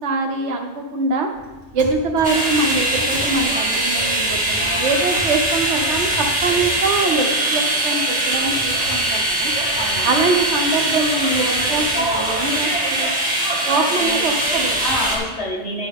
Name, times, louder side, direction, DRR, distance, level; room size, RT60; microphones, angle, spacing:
voice 1, 0.0-1.3 1.7-9.5 10.0-13.1 13.7-14.8, right 3 dB, 85° right, 3 dB, 1.3 m, -23 dB
sound 1, 1.3-15.2, right 1 dB, 50° left, 2.5 m, -38 dB
sound 2, 2.2-15.2, right 1 dB, 5° right, 1.8 m, -21 dB
voice 2, 9.8-10.1 14.0-15.9, left 1 dB, 70° left, -3 dB, 2.0 m, -28 dB
11.5 x 6.1 x 3.6 m, 1.2 s
omnidirectional pair, 1.1 m